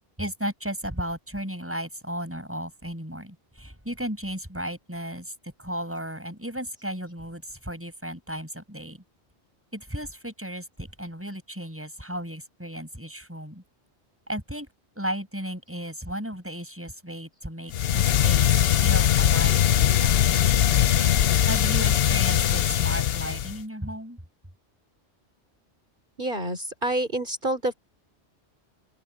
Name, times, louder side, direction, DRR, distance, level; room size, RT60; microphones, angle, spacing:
voice 1, 0.2-9.0 9.7-13.6 14.3-14.7 15.0-20.4 21.5-24.2, equal, 10° right, 5.8 m, -34 dB
sound 1, 17.7-23.6, left 10 dB, 65° left, 0.8 m, -21 dB
voice 2, 26.2-27.7, right 1 dB, 45° right, 3.9 m, -28 dB
open air
omnidirectional pair, 1.2 m